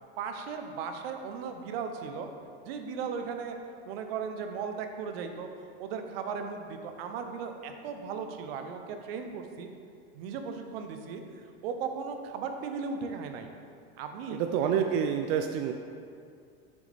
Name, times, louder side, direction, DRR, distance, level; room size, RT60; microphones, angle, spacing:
voice 1, 0.2-2.3 2.6-3.6 3.9-5.5 5.8-9.7 10.1-11.2 11.6-13.5 14.0-14.4, right 6 dB, 70° right, 6 dB, 0.8 m, -36 dB
voice 2, 14.3-15.7, right 8 dB, 50° right, 5 dB, 0.4 m, -27 dB
6.9 x 6.3 x 3.4 m, 2.3 s
supercardioid pair, 125°, 30 cm